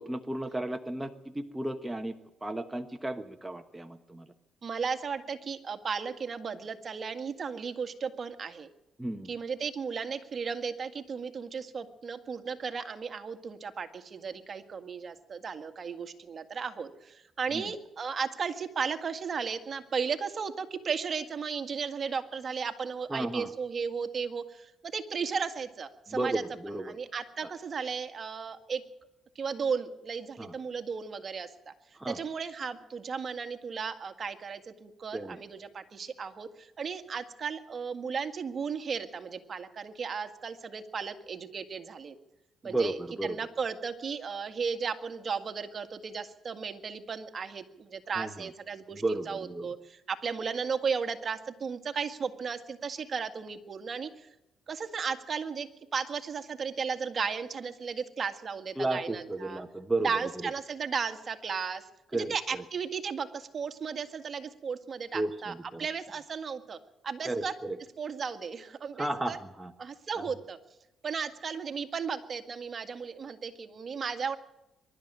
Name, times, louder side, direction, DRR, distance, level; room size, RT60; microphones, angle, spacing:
voice 1, 0.1-2.1 2.4-4.3 9.0-9.3 17.5-17.6 23.1-23.5 26.1-27.0 30.4-30.5 32.0-32.2 35.1-35.4 42.6-43.4 48.2-48.3 49.0-49.7 58.8-60.1 60.4-60.5 62.1-62.3 65.1-65.9 67.2-67.8 69.0-69.7 70.2-70.3, right 2 dB, 10° right, 6 dB, 1.2 m, -33 dB
voice 2, 4.6-8.7 9.3-26.4 26.7-28.8 29.4-31.7 32.1-42.2 42.6-54.3 54.7-59.6 60.0-61.9 62.1-66.8 67.0-67.6 68.0-69.4 69.8-70.6 71.0-74.4, right 6 dB, 45° right, 8 dB, 1.9 m, -35 dB
23.5 x 12.5 x 9.0 m, 0.91 s
cardioid pair, 90°, 0 cm